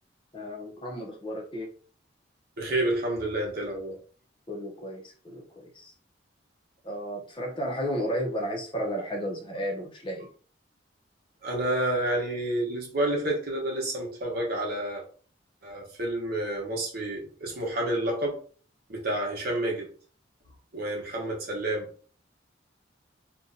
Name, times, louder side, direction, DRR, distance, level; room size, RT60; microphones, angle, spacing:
voice 1, 0.3-1.7 4.5-5.9 6.8-10.3, equal, 25° left, 0 dB, 0.6 m, -33 dB
voice 2, 2.6-4.0 11.4-15.0 15.6-18.4 18.9-19.9 20.7-21.9, right 1 dB, 50° right, -1 dB, 1.0 m, -29 dB
2.6 x 2.2 x 3.8 m, 0.42 s
head